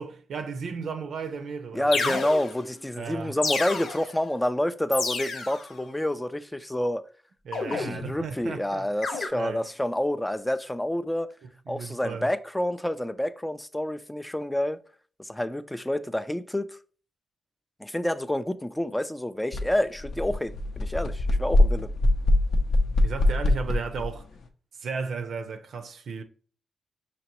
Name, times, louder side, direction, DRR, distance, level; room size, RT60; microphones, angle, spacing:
voice 1, 0.0-2.2 2.9-3.4 7.4-9.6 11.7-12.3 23.0-24.3 24.8-26.2, right 5 dB, 65° right, 0.5 m, -35 dB
sound 1, 1.2-1.3 1.9-2.7 3.4-4.2 4.9-5.7 7.5-8.3 9.0-9.3, left 4 dB, 85° left, 1.0 m, -30 dB
voice 2, 1.7-7.1 7.7-11.3 11.7-14.8 15.2-16.7 17.8-21.9, left 1 dB, 5° left, 0.3 m, -28 dB
sound 2, 19.5-19.6 20.0-24.1, left 1 dB, 70° left, 0.6 m, -23 dB
5.9 x 2.9 x 3.0 m
cardioid pair, 120°, 0 cm